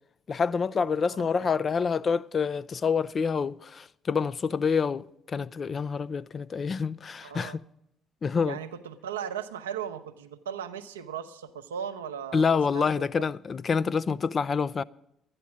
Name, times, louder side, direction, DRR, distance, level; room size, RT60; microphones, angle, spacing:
voice 1, 0.3-7.6 8.2-8.6 12.3-14.8, left 5 dB, 40° left, 0.4 m, -27 dB
voice 2, 0.8-1.5 7.2-7.6 8.5-13.1, right 8 dB, 90° right, 0.6 m, -37 dB
12.0 x 9.7 x 7.3 m
hypercardioid pair, 55°, 0 cm